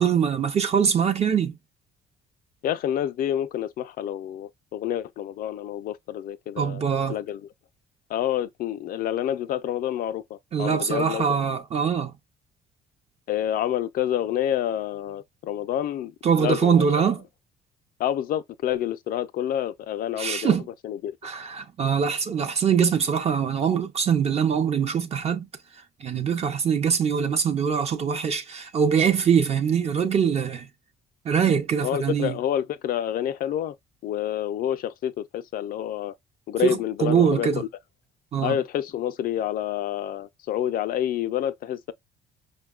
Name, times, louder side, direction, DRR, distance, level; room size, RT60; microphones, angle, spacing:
voice 1, 0.0-1.5 6.6-7.2 10.5-12.1 16.2-17.2 20.2-20.6 21.2-25.5 26.0-30.7 31.3-32.3 36.6-37.6 38.3-38.5, right 7 dB, 40° right, 0.5 m, -23 dB
voice 2, 2.6-6.8 7.1-7.5 8.1-11.5 13.3-17.1 18.0-20.6 20.8-21.1 31.8-33.8 34.0-36.1 36.5-37.7 38.4-41.9, left 11 dB, 60° left, 0.4 m, -28 dB
5.1 x 2.2 x 2.3 m
cardioid pair, 110°, 17 cm